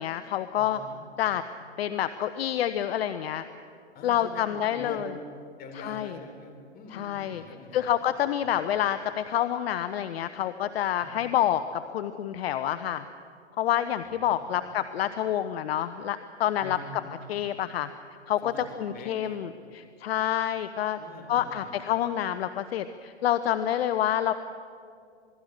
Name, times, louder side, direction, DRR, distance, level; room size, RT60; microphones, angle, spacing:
voice 1, 0.0-0.8 1.2-1.4 1.8-3.4 4.0-5.1 5.7-6.2 6.9-7.4 7.7-13.0 13.6-17.0 17.3-17.9 18.3-21.0 21.3-24.3, left 11 dB, 60° left, 12 dB, 1.0 m, -28 dB
voice 2, 0.6-1.0 3.9-5.2 5.6-7.9 8.4-8.6 11.0-11.2 14.2-14.7 16.6-17.1 18.4-19.4 20.4-20.5 21.0-21.7, left 3 dB, 25° left, 5 dB, 3.9 m, -44 dB
27.5 x 20.5 x 6.6 m, 2.4 s
hypercardioid pair, 125°, 34 cm